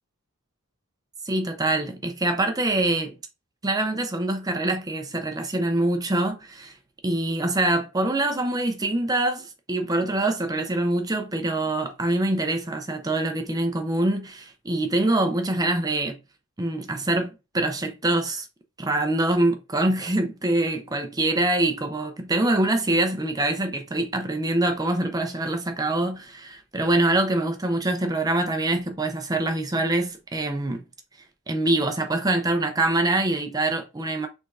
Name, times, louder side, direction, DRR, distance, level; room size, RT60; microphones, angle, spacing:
voice 1, 1.2-3.1 3.6-6.8 7.0-16.2 16.6-18.5 18.8-30.8 31.5-34.3, right 2 dB, 15° right, 0.6 m, -24 dB
4.9 x 3.6 x 2.5 m
head